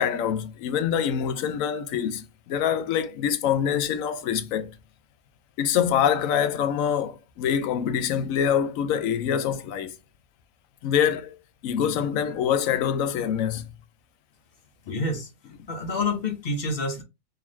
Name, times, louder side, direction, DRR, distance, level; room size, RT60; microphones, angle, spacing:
voice 1, 0.0-4.8 5.6-9.9 10.8-11.4 11.6-13.7 14.9-15.0, left 8 dB, 90° left, 1.0 m, -25 dB
voice 2, 14.9-15.3 15.7-17.0, left 2 dB, 50° left, 1.0 m, -28 dB
3.8 x 2.7 x 3.0 m
omnidirectional pair, 1.4 m